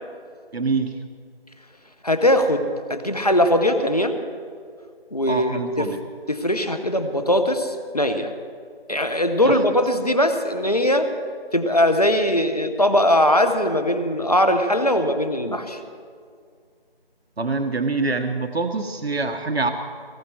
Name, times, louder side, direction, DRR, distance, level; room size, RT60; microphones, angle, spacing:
voice 1, 0.5-1.0 5.3-6.0 9.4-9.6 17.4-19.7, right 3 dB, 85° right, 6 dB, 1.3 m, -25 dB
voice 2, 2.0-4.2 5.1-5.9 6.3-8.3 8.9-11.1 11.5-15.8, left 1 dB, 40° left, 7 dB, 1.1 m, -20 dB
18.5 x 16.0 x 4.7 m, 2.1 s
figure-of-eight pair, 180°, 30 cm